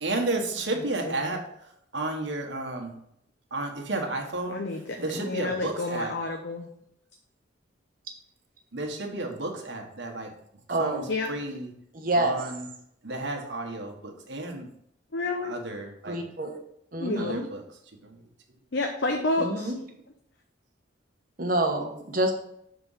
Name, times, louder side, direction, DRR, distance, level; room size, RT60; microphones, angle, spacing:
voice 1, 0.0-1.4 1.9-2.9 3.5-4.6 5.0-6.1 8.7-10.3 10.8-11.0 11.3-11.7 12.1-12.7 13.0-14.7 15.4-16.2 17.1-17.6 18.0-18.2, right 2 dB, 70° right, 2 dB, 1.3 m, -32 dB
voice 2, 1.0-1.4 4.5-6.7 11.1-11.3 15.1-15.6 17.0-17.4 18.7-19.7, left 2 dB, 65° left, 3 dB, 0.7 m, -30 dB
voice 3, 5.0-5.3 10.7-11.1 11.9-12.5 16.0-16.6 16.9-17.4 19.4-19.8 21.4-22.3, right 1 dB, 45° right, 2 dB, 1.1 m, -28 dB
6.8 x 3.7 x 5.5 m, 0.73 s
head